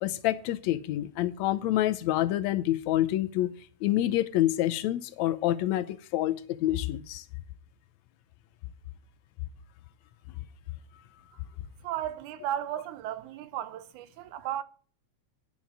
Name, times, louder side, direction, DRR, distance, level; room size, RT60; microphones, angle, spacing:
voice 1, 0.0-3.5 3.8-7.3, left 14 dB, 80° left, 1.8 m, -27 dB
voice 2, 11.8-14.6, right 11 dB, 90° right, 2.2 m, -35 dB
10.0 x 5.5 x 7.3 m
omnidirectional pair, 3.4 m